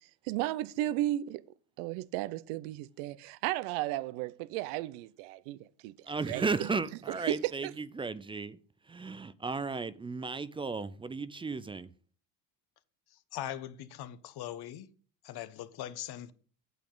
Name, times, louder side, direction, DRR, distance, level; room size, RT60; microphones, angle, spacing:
voice 1, 0.2-1.4 1.8-5.9 6.3-6.7 7.1-7.7, right 15 dB, 70° right, 0.7 m, -34 dB
voice 2, 6.1-8.6 8.9-11.9, right 4 dB, 10° right, 0.3 m, -35 dB
voice 3, 13.1-14.9 15.2-16.3, left 12 dB, 50° left, 1.1 m, -41 dB
9.2 x 8.3 x 3.9 m
supercardioid pair, 95°, 48 cm